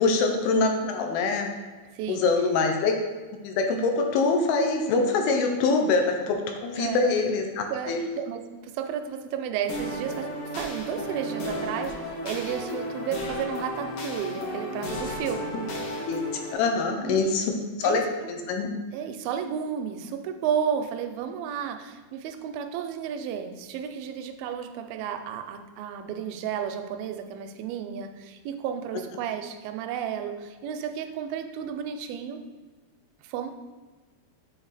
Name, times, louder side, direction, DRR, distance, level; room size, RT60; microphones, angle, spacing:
voice 1, 0.0-1.5 2.1-2.9 3.4-8.0 16.0-16.2 16.5-17.5 17.8-18.0 18.3-18.7, left 4 dB, 80° left, 4 dB, 2.5 m, -24 dB
voice 2, 1.9-2.3 6.8-7.1 7.7-15.6 17.1-17.4 17.8-18.3 18.9-32.4 33.2-33.5, right 8 dB, 80° right, 7 dB, 2.2 m, -32 dB
sound 1, 9.7-16.5, equal, 65° left, 1.5 m, -33 dB
7.6 x 3.7 x 4.0 m, 1.3 s
omnidirectional pair, 4.3 m